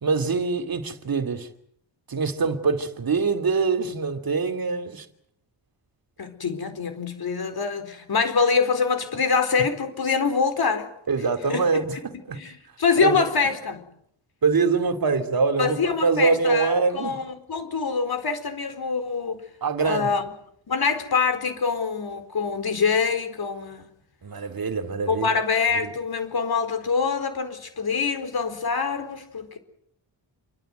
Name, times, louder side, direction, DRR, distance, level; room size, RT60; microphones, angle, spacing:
voice 1, 0.0-1.5 2.1-5.1 11.1-12.4 13.0-13.2 14.4-17.2 19.6-20.1 24.2-25.3 25.7-25.9, right 4 dB, 50° right, 2.9 m, -24 dB
voice 2, 6.2-10.9 11.5-11.7 12.3-13.8 15.6-19.4 19.8-20.2 20.7-23.8 25.1-29.6, left 5 dB, 55° left, 4.5 m, -25 dB
28.5 x 24.5 x 8.0 m
wide cardioid pair, 170°, 45 cm